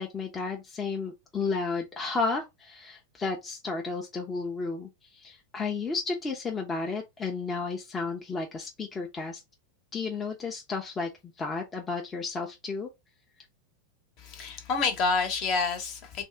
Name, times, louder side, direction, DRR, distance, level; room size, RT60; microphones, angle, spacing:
voice 1, 0.0-9.4 9.9-11.1 11.4-12.9, left 4 dB, 20° left, 0.6 m, -32 dB
voice 2, 14.2-16.2, left 4 dB, 50° left, 1.0 m, -28 dB
2.6 x 2.4 x 3.3 m
hypercardioid pair, 110°, 0 cm